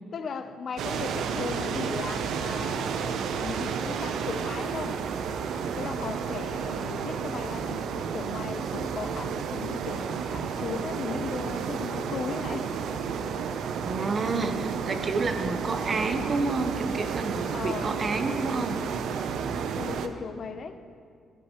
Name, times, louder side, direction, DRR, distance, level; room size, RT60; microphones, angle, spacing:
voice 1, 0.1-5.0 5.8-12.8 17.5-18.0 19.7-20.8, left 5 dB, 55° left, 10 dB, 0.6 m, -37 dB
sound 1, 0.8-20.1, right 6 dB, 75° right, 0.5 m, -31 dB
voice 2, 13.8-18.8, right 3 dB, 40° right, 8 dB, 0.8 m, -29 dB
13.0 x 10.5 x 3.0 m, 2.2 s
cardioid pair, 90°, 0 cm